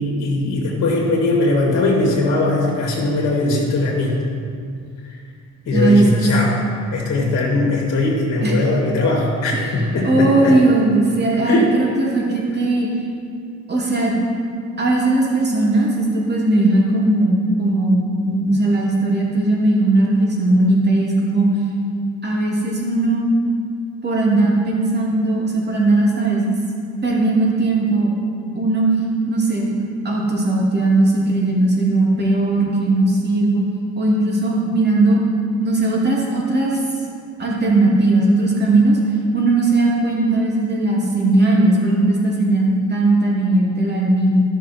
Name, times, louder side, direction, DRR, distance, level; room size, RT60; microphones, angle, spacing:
voice 1, 0.0-4.2 5.7-6.6 6.9-10.6 11.4-11.7, left 2 dB, 60° left, -2 dB, 2.2 m, -19 dB
voice 2, 5.7-6.2 8.4-8.5 9.5-9.6 10.0-12.9 13.7-14.1 14.8-21.5 22.2-23.2 24.0-26.6 27.0-28.1 28.5-28.9 29.3-29.7 30.0-33.6 34.0-35.2 35.6-36.8 37.4-39.0 39.3-44.4, right 2 dB, 35° right, -4 dB, 2.8 m, -18 dB
13.0 x 6.1 x 4.5 m, 2.3 s
cardioid pair, 90°, 30 cm